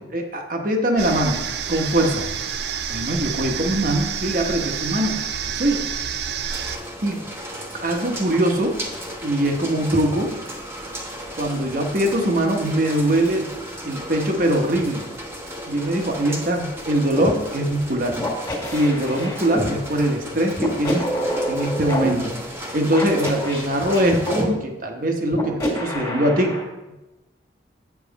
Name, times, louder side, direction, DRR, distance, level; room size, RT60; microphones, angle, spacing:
voice 1, 0.0-1.4 1.7-2.3 2.9-5.2 5.5-5.9 7.0-7.2 7.7-8.8 9.2-10.3 11.4-13.5 13.8-15.0 15.7-18.2 18.7-21.0 21.5-22.3 22.7-26.5, right 1 dB, 50° right, 3 dB, 1.2 m, -22 dB
sound 1, 1.0-6.8, right 7 dB, 65° right, 0.5 m, -28 dB
sound 2, 6.5-24.5, equal, 15° right, 1.0 m, -35 dB
sound 3, 17.2-17.3 18.2-19.7 20.6-22.1 22.9-24.5 25.3-26.6, equal, 20° left, 1.9 m, -26 dB
8.2 x 7.2 x 4.1 m, 1.0 s
head